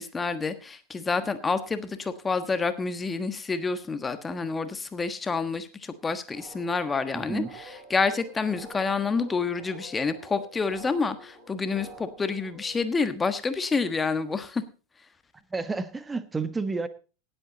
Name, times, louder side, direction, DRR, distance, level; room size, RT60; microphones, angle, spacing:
voice 1, 0.0-14.6, left 4 dB, 15° left, 11 dB, 1.3 m, -28 dB
sound 1, 6.3-12.8, right 1 dB, 35° right, 7.9 m, -48 dB
voice 2, 7.1-7.5 15.5-16.9, right 4 dB, 15° right, 13 dB, 1.2 m, -30 dB
18.0 x 8.1 x 3.9 m, 0.35 s
figure-of-eight pair, 85°, 0 cm